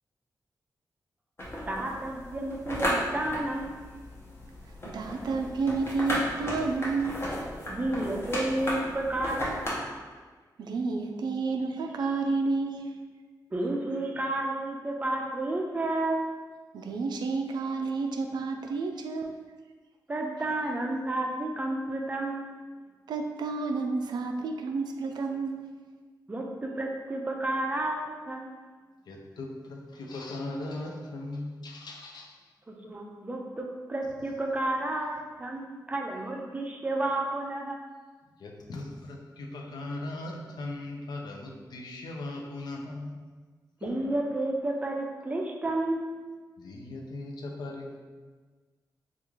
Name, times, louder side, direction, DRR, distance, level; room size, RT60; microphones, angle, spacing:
sound 1, 1.4-9.7, equal, 35° left, 0.7 m, -35 dB
voice 1, 1.7-4.0 7.7-9.6 13.5-16.3 20.1-22.7 26.3-28.7 32.7-33.6 33.9-37.8 43.8-46.0, right 2 dB, 20° right, 1 dB, 0.4 m, -31 dB
voice 2, 4.9-7.3 10.6-12.9 16.7-19.4 23.1-25.7, right 3 dB, 90° right, 4 dB, 0.3 m, -30 dB
voice 3, 29.1-32.4 32.8-32.9 38.4-43.2 43.8-44.0 46.6-48.0, left 2 dB, 75° left, 0 dB, 0.5 m, -38 dB
3.5 x 2.4 x 3.0 m, 1.4 s
wide cardioid pair, 150°, 7 cm